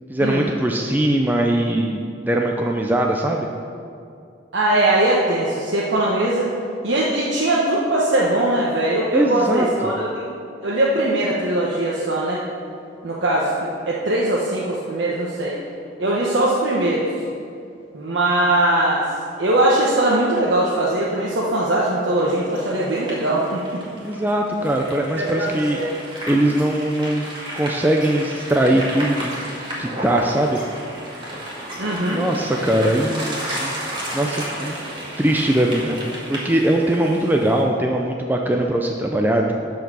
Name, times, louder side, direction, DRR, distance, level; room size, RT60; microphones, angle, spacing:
voice 1, 0.1-2.0 2.3-3.5 9.1-9.9 24.0-25.8 26.3-27.3 27.5-29.3 29.8-30.6 32.1-33.7 34.1-34.8 35.2-36.0 36.3-39.5, right 1 dB, 10° right, 1 dB, 0.5 m, -21 dB
voice 2, 4.5-6.5 6.8-10.3 10.6-12.4 13.0-15.6 16.0-17.1 17.9-19.1 19.4-23.8 25.2-25.9 31.8-32.3, right 1 dB, 80° right, -5 dB, 1.1 m, -20 dB
sound 1, 22.2-37.6, right 1 dB, 25° right, 1.9 m, -32 dB
12.0 x 4.7 x 6.1 m, 2.4 s
head